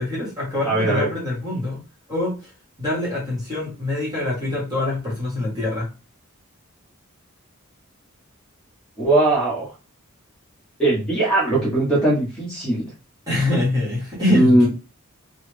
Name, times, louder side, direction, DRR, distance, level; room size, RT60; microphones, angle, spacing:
voice 1, 0.0-1.8 2.1-2.3 2.8-5.9 13.3-14.7, left 1 dB, 20° right, -5 dB, 1.4 m, -24 dB
voice 2, 0.6-1.1 9.0-9.7 10.8-12.9 14.3-14.7, right 2 dB, 5° left, -7 dB, 1.2 m, -19 dB
3.1 x 2.4 x 3.3 m, 0.32 s
head